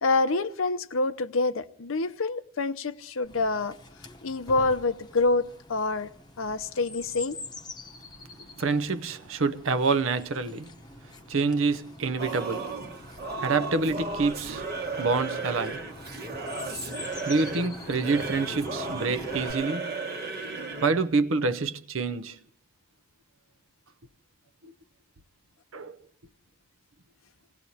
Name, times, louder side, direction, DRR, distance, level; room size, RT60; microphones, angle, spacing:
voice 1, 0.0-3.8 4.2-6.1 6.4-7.4, left 3 dB, 75° left, 0.7 m, -27 dB
Chirp tweet, 3.2-19.5, left 2 dB, 20° left, 0.9 m, -45 dB
voice 2, 8.6-10.7 11.3-12.8 13.4-15.9 17.3-19.9 20.8-22.4 24.6-24.7 25.7-26.0, right 4 dB, 70° right, 0.7 m, -27 dB
Singing / Musical instrument, 12.2-21.0, right 3 dB, 50° right, 1.3 m, -35 dB
27.5 x 18.0 x 2.8 m
head